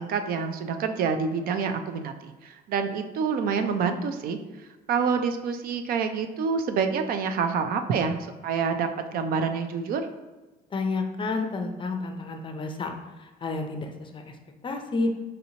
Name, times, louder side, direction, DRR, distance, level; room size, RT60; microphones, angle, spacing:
voice 1, 0.0-4.4 4.9-10.0, right 5 dB, 60° right, 7 dB, 0.4 m, -27 dB
voice 2, 10.7-12.9 13.2-14.4 14.6-15.1, left 3 dB, 30° left, 5 dB, 0.5 m, -30 dB
5.1 x 2.8 x 2.8 m, 1.2 s
cardioid pair, 110°, 17 cm